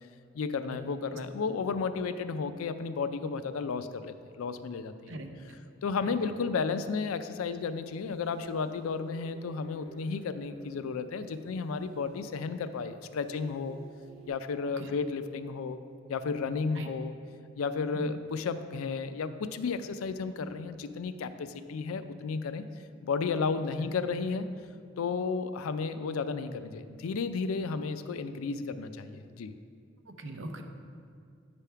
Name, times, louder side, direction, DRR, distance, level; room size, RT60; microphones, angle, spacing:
voice 1, 0.3-5.1 5.8-13.8 14.3-15.8 16.1-17.1 17.6-22.6 23.0-24.5 25.0-29.5, left 5 dB, 90° left, 11 dB, 0.4 m, -33 dB
sound 1, 7.4-14.3, right 2 dB, 90° right, 1.0 m, -55 dB
voice 2, 30.2-30.6, right 1 dB, 65° right, 5 dB, 0.7 m, -39 dB
9.0 x 3.5 x 5.6 m, 2.3 s
head